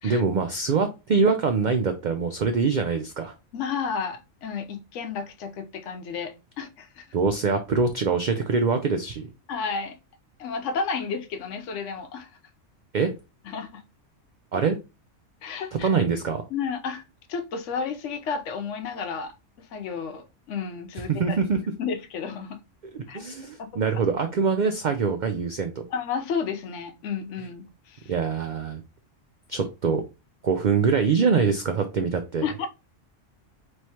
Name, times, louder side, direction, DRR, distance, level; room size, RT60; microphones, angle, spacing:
voice 1, 0.0-3.3 7.1-9.3 12.9-13.1 14.5-14.8 15.8-16.4 21.1-21.6 22.9-25.8 28.1-28.8 29.5-30.0 30.4-32.4, right 5 dB, 90° right, 0.4 m, -24 dB
voice 2, 3.5-7.2 9.5-10.0 10.4-12.3 13.5-13.8 15.4-15.9 16.5-17.0 17.3-21.4 21.8-22.6 23.1-23.2 23.6-23.8 25.9-28.1 32.4-32.7, left 5 dB, 75° left, 0.9 m, -32 dB
4.6 x 3.1 x 2.8 m
omnidirectional pair, 1.3 m